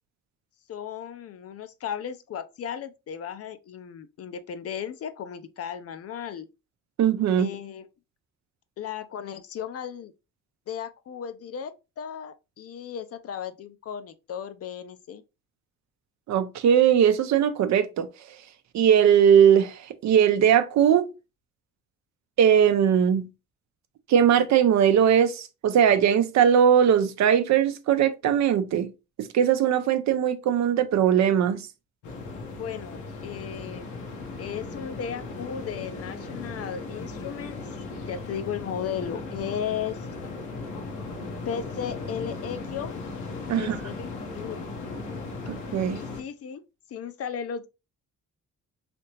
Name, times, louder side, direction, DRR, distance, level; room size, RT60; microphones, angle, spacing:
voice 1, 0.7-6.5 7.4-7.9 8.8-10.1 10.7-15.2 32.6-33.9 34.4-37.6 38.0-40.0 41.5-43.0 43.6-44.7 45.9-46.6 46.9-47.7, left 8 dB, 50° left, 0.5 m, -35 dB
voice 2, 7.0-7.5 16.3-18.1 18.7-21.1 22.4-23.3 24.1-28.9 29.2-31.7 43.5-43.8 45.5-46.0, right 8 dB, 65° right, 0.6 m, -20 dB
sound 1, 32.0-46.2, left 3 dB, 85° left, 0.9 m, -37 dB
3.4 x 2.8 x 2.9 m
cardioid pair, 90°, 30 cm